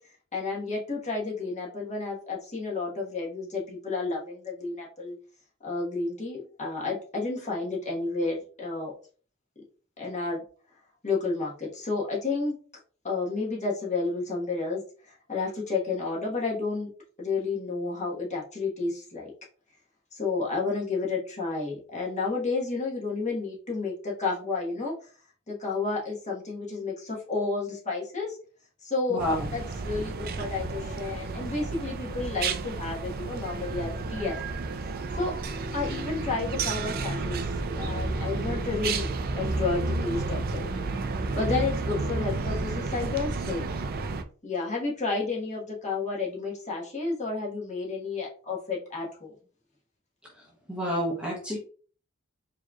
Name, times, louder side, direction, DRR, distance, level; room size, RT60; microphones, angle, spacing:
voice 1, 0.3-5.2 5.6-8.9 10.0-10.4 11.0-12.5 13.0-16.9 17.2-19.3 20.1-24.9 25.5-28.3 28.8-29.2 29.5-34.6 35.1-35.3 35.7-39.1 39.4-40.7 41.3-43.6 44.4-49.3, left 3 dB, 35° left, -3 dB, 1.3 m, -31 dB
sound 1, 29.2-44.2, right 3 dB, 45° right, 0.4 m, -31 dB
voice 2, 50.7-51.6, equal, 5° right, -3 dB, 0.8 m, -28 dB
4.6 x 2.8 x 2.3 m, 0.41 s
head